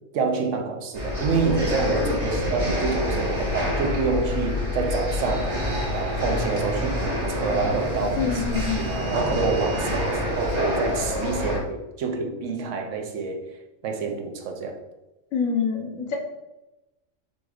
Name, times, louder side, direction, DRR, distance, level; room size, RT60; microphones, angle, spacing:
voice 1, 0.1-5.5 5.9-8.3 8.8-13.5 13.8-14.8, right 4 dB, 75° right, 1.0 m, -27 dB
sound 1, 0.9-11.6, left 1 dB, 35° right, 1.1 m, -27 dB
voice 2, 8.2-8.9 15.3-16.2, left 6 dB, 90° left, 1.1 m, -26 dB
4.1 x 2.4 x 4.7 m
omnidirectional pair, 1.3 m